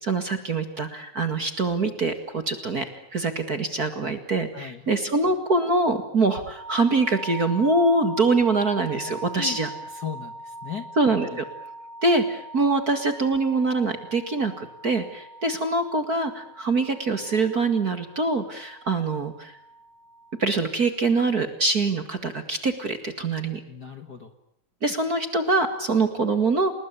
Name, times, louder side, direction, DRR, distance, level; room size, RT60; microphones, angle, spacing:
voice 1, 0.0-2.9 3.1-9.7 11.0-11.4 12.0-19.6 20.4-23.6 24.8-26.7, right 3 dB, 35° right, 8 dB, 2.0 m, -24 dB
sound 1, 6.6-20.6, right 2 dB, 70° right, 9.3 m, -41 dB
voice 2, 9.4-10.9 11.2-11.4 23.7-24.3, left 7 dB, 40° left, 8 dB, 1.6 m, -37 dB
29.5 x 20.5 x 8.4 m, 0.75 s
omnidirectional pair, 3.5 m